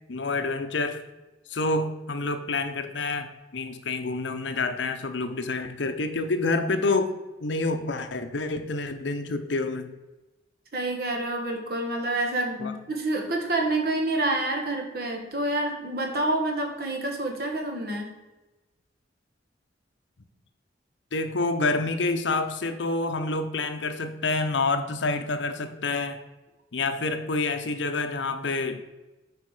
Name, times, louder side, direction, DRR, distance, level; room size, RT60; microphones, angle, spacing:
voice 1, 0.1-1.0 1.5-9.9 12.6-12.7 21.1-26.2 26.7-28.8, left 3 dB, 80° left, 8 dB, 0.8 m, -28 dB
voice 2, 10.7-18.1, right 2 dB, 55° right, 2 dB, 1.4 m, -28 dB
8.3 x 4.9 x 4.9 m, 1.1 s
head